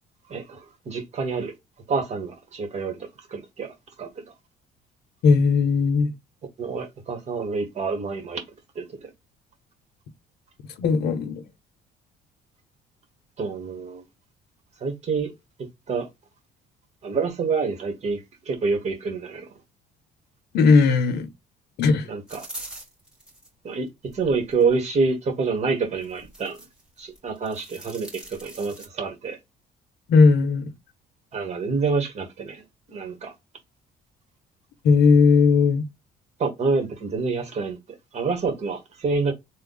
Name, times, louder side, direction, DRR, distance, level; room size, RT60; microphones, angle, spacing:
voice 1, 0.3-1.5 1.9-4.1 6.6-8.4 8.7-9.1 13.4-14.0 14.8-15.3 15.9-16.1 17.0-19.5 22.1-22.5 23.6-23.9 24.1-26.6 27.0-29.4 31.3-32.6 32.9-33.3 36.4-37.8 38.1-39.3, right 4 dB, 40° right, 1.5 m, -27 dB
voice 2, 5.2-6.1 10.8-11.4 20.5-21.3 21.8-22.1 30.1-30.7 34.8-35.8, left 4 dB, 75° left, 0.8 m, -17 dB
sound 1, 22.3-23.5 24.1-24.7 26.0-26.8 27.2-28.9, right 1 dB, 5° right, 2.1 m, -42 dB
3.4 x 2.2 x 3.8 m
cardioid pair, 110°, 17 cm